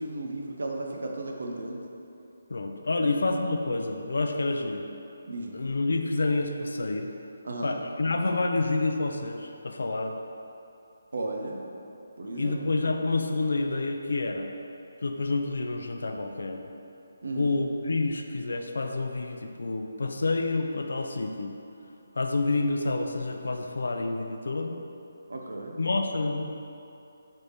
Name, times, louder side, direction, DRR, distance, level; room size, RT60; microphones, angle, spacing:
voice 1, 0.0-1.8 2.9-3.1 5.3-5.6 7.4-7.8 11.1-11.7 12.2-12.6 17.2-17.6 25.3-25.8, right 2 dB, 85° right, 0 dB, 0.5 m, -35 dB
voice 2, 2.5-4.8 5.5-7.1 7.6-10.2 12.4-14.5 15.0-16.7 17.4-21.5 22.2-24.8 25.8-26.5, left 3 dB, 80° left, 4 dB, 0.3 m, -28 dB
3.3 x 3.2 x 4.0 m, 2.8 s
hypercardioid pair, 170°, 0 cm